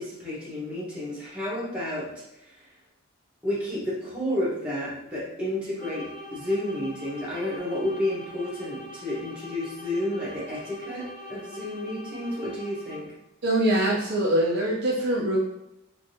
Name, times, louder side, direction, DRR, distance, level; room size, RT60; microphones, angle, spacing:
voice 1, 0.0-2.1 3.4-13.1, left 1 dB, 5° right, -7 dB, 1.0 m, -31 dB
sound 1, 5.7-13.3, left 1 dB, 40° left, 0.6 m, -43 dB
voice 2, 13.4-15.4, right 1 dB, 50° right, -2 dB, 0.4 m, -23 dB
3.5 x 2.5 x 2.6 m, 0.86 s
head